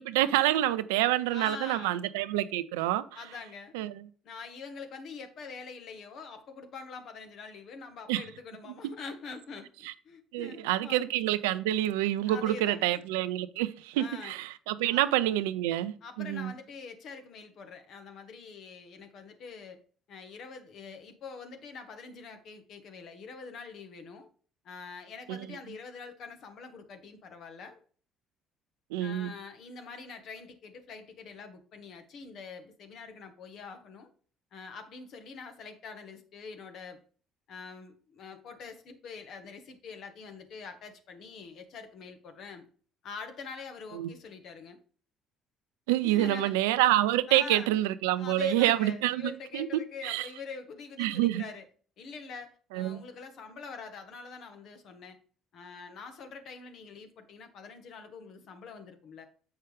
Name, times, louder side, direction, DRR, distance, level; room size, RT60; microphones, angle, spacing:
voice 1, 0.0-3.0 3.7-4.0 8.1-8.2 9.8-9.9 10.3-16.5 25.3-25.4 28.9-29.3 43.9-44.1 45.9-50.3 51.0-51.4 52.7-53.0, right 14 dB, 85° right, 0.5 m, -27 dB
voice 2, 1.3-2.0 3.1-3.7 4.2-11.0 12.2-13.0 14.0-14.3 14.8-15.0 16.0-19.8 20.1-24.3 24.6-27.8 29.0-34.1 34.5-37.0 37.5-42.6 43.0-44.8 46.0-46.6 47.3-47.8 48.1-51.6 52.0-55.2 55.5-59.3, left 5 dB, 65° left, 1.3 m, -45 dB
7.4 x 5.8 x 3.4 m
hypercardioid pair, 65°, 0 cm